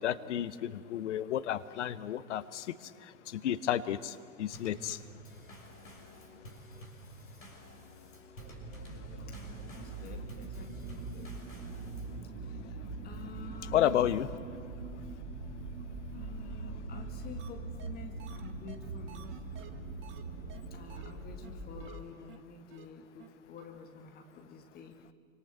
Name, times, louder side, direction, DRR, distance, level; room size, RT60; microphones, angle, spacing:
voice 1, 0.0-2.7 3.3-5.0 13.7-14.3, left 11 dB, 55° left, 13 dB, 1.2 m, -31 dB
Drum kit / Snare drum / Bass drum, 4.5-12.2, equal, 75° left, 5.9 m, -51 dB
sound 1, 8.4-21.9, right 3 dB, 45° right, 3.6 m, -42 dB
voice 2, 9.3-11.3 12.4-14.1 16.1-19.4 20.7-25.1, left 5 dB, 20° left, 4 dB, 2.3 m, -50 dB
sound 2, 17.4-17.5 17.8-17.9 18.2-20.2 20.5-20.6 20.9-21.1 21.4-21.5 21.8-22.0 22.3-22.4 22.7-22.9 23.2-23.3 23.6-23.7, right 10 dB, 30° right, 1.8 m, -52 dB
28.0 x 25.5 x 8.0 m, 2.1 s
figure-of-eight pair, 95°, 41 cm